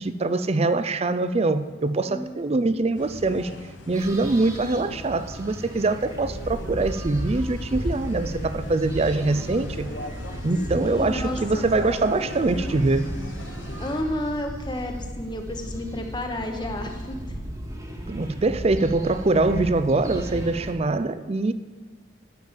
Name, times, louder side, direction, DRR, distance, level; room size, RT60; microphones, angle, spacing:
voice 1, 0.0-3.5 3.9-9.9 10.4-13.1 18.1-21.5, right 3 dB, 30° right, 13 dB, 0.4 m, -23 dB
sound 1, 2.9-14.0, left 1 dB, 70° left, 1.3 m, -39 dB
sound 2, 3.9-20.7, equal, 15° right, 1.3 m, -35 dB
voice 2, 4.5-4.9 10.8-11.7 13.8-17.2, left 1 dB, 25° left, 4 dB, 1.0 m, -31 dB
9.5 x 7.1 x 7.4 m, 1.3 s
head